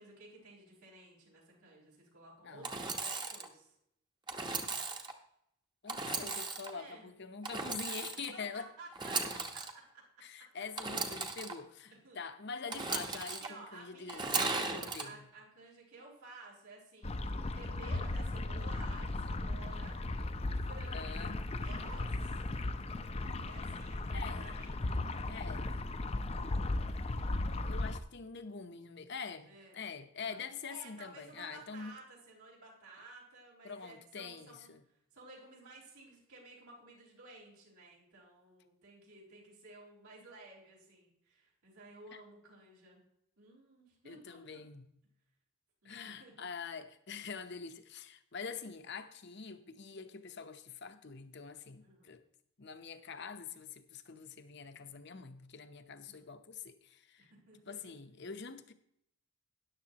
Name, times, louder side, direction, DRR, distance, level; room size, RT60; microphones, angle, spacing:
voice 1, 0.0-3.7 6.7-7.1 7.8-7.9 8.3-10.0 12.0-12.2 13.2-17.2 17.5-20.0 20.6-22.4 23.5-24.9 26.3-26.9 29.5-29.8 30.2-34.7 35.1-43.0 43.4-44.6 45.8-46.4 51.8-52.2 56.0-56.3 57.2-57.8, right 2 dB, 85° right, 5.1 m, -54 dB
Engine / Sawing, 2.6-3.5 4.3-5.1 5.9-6.7 7.4-8.3 8.9-9.7 10.8-11.5 12.7-13.5 14.1-15.0, right 4 dB, 20° right, 0.9 m, -36 dB
voice 2, 5.8-8.7 10.2-15.3 20.9-21.5 24.1-24.6 25.3-25.9 27.6-32.0 33.6-34.8 42.1-42.2 44.0-44.9 45.8-52.2 52.6-57.3 57.6-58.7, left 5 dB, 50° left, 0.8 m, -45 dB
sound 1, 17.0-28.0, left 2 dB, 25° left, 0.5 m, -36 dB
13.5 x 10.5 x 2.9 m
head